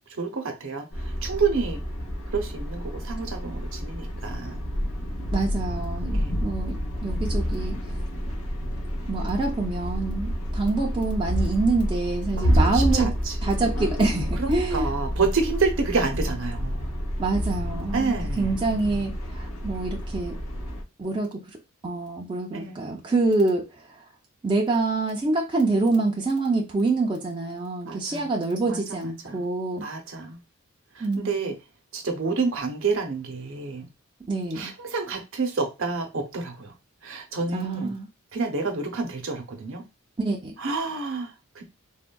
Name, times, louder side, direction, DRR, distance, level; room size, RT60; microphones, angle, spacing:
voice 1, 0.1-1.8 2.3-4.6 6.1-6.4 12.3-13.3 14.4-17.0 17.9-18.6 22.5-22.8 27.9-28.3 28.6-29.5 29.7-30.4 30.9-31.6 31.9-33.9 34.5-36.7 37.0-37.9 38.3-39.8 40.6-41.6, right 4 dB, 60° right, 0.7 m, -29 dB
sound 1, 0.9-20.8, equal, 85° left, 0.9 m, -29 dB
voice 2, 5.3-7.8 9.1-13.1 13.4-14.9 17.2-20.4 21.0-21.4 21.8-23.7 24.4-29.9 31.0-31.3 34.3-34.7 37.5-38.1 40.2-40.5, right 3 dB, 20° right, 0.4 m, -26 dB
3.5 x 2.1 x 2.2 m
head